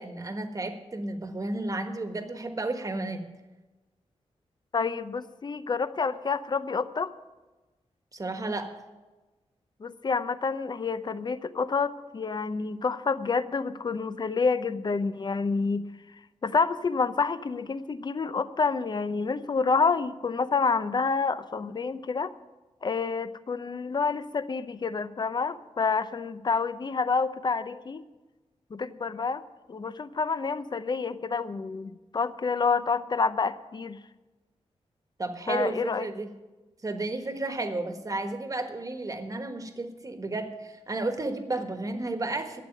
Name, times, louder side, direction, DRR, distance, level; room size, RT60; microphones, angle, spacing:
voice 1, 0.0-3.2 8.1-8.7 35.2-36.3 36.8-42.6, right 2 dB, 30° right, 7 dB, 1.4 m, -32 dB
voice 2, 4.7-7.1 9.8-15.9 16.4-22.3 22.8-28.0 28.7-29.4 29.7-34.0 35.5-36.1, left 4 dB, 40° left, 13 dB, 0.7 m, -28 dB
12.0 x 8.2 x 9.1 m, 1.2 s
wide cardioid pair, 125°, 12 cm